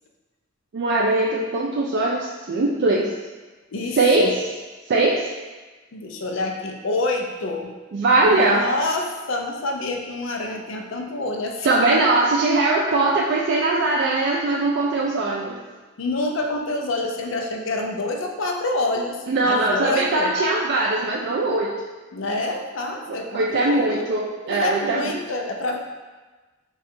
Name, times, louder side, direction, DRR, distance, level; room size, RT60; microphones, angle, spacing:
voice 1, 0.7-3.1 3.9-4.3 4.9-5.3 7.9-8.6 11.6-15.6 19.3-21.7 23.1-25.0, right 2 dB, 55° right, -3 dB, 0.4 m, -21 dB
voice 2, 3.7-4.3 5.9-7.7 8.3-12.3 16.0-20.3 22.1-24.1 24.4-25.8, left 2 dB, 70° left, 3 dB, 0.5 m, -27 dB
3.8 x 2.3 x 4.2 m, 1.3 s
head